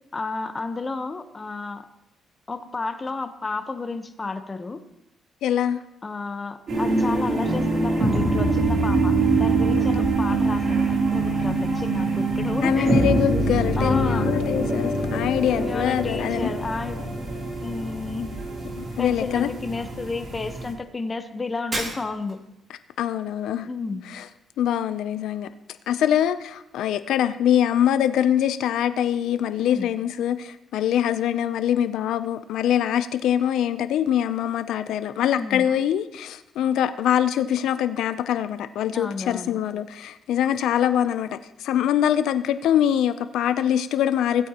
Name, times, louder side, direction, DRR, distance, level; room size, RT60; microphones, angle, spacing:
voice 1, 0.1-1.8 2.5-4.8 6.0-12.9 13.8-14.3 15.4-17.0 17.6-18.3 19.0-22.4 23.6-24.0 29.6-29.9 35.4-35.7 38.9-39.6, left 3 dB, 30° left, 9 dB, 1.0 m, -32 dB
voice 2, 5.4-5.8 9.8-9.9 12.6-16.5 18.8-19.5 23.0-23.7 24.1-24.2 24.6-25.5 25.9-44.5, left 10 dB, 80° left, 11 dB, 0.5 m, -23 dB
sound 1, 6.7-20.7, right 2 dB, 55° right, 3.2 m, -24 dB
Shatter, 21.7-22.5, right 1 dB, 30° right, 2.4 m, -31 dB
16.0 x 8.8 x 2.9 m, 0.89 s
cardioid pair, 90°, 0 cm